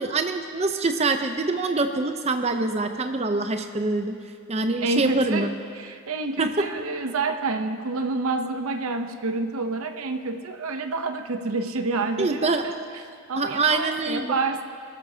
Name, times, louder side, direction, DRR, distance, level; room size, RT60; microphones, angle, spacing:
voice 1, 0.0-4.2 4.5-5.5 6.4-6.5 12.2-12.6 13.4-14.3, right 3 dB, 30° right, 7 dB, 0.6 m, -25 dB
voice 2, 4.8-12.7 13.3-14.6, right 3 dB, 75° right, 7 dB, 0.7 m, -28 dB
19.5 x 13.0 x 2.8 m, 2.2 s
head